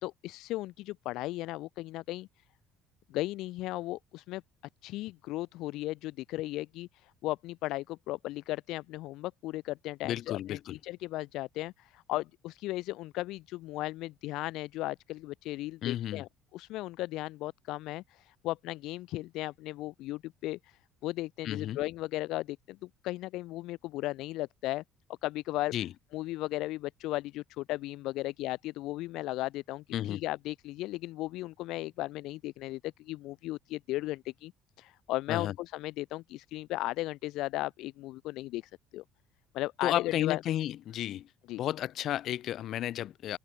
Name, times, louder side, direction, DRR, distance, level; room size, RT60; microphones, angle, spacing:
voice 1, 0.0-2.3 3.1-4.4 4.8-24.8 25.2-25.7 26.1-34.5 34.8-38.6 38.9-39.0 39.5-40.4 41.5-41.6, left 17 dB, 75° left, 1.2 m, -36 dB
voice 2, 10.0-10.8 15.8-16.2 21.4-21.8 25.7-25.9 29.9-30.2 35.3-35.5 39.8-41.3 41.6-43.4, left 12 dB, 55° left, 3.8 m, -32 dB
cardioid pair, 135°, 0 cm